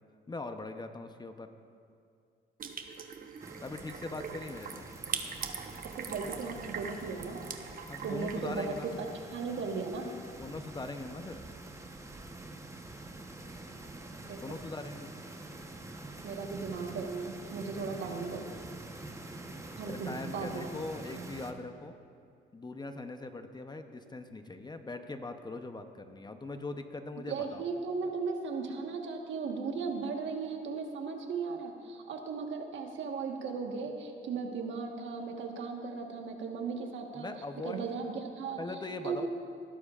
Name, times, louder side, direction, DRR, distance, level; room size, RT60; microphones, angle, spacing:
voice 1, 0.3-1.5 3.6-4.9 7.8-9.1 10.4-11.4 14.4-15.1 19.9-21.9 22.5-27.6 37.1-37.8 38.6-39.3, left 2 dB, 20° left, 7 dB, 0.7 m, -41 dB
sound 1, 2.6-9.2, right 6 dB, 45° right, 0.9 m, -42 dB
sound 2, 3.4-21.5, right 2 dB, 15° right, 1.0 m, -46 dB
voice 2, 5.8-7.4 8.0-8.7 9.3-10.1 14.2-14.6 16.2-18.6 19.8-20.7 21.1-21.4 27.3-37.3 37.6-38.6 39.0-39.3, right 5 dB, 70° right, 3 dB, 1.4 m, -37 dB
20.0 x 12.0 x 2.5 m, 2.3 s
cardioid pair, 90°, 20 cm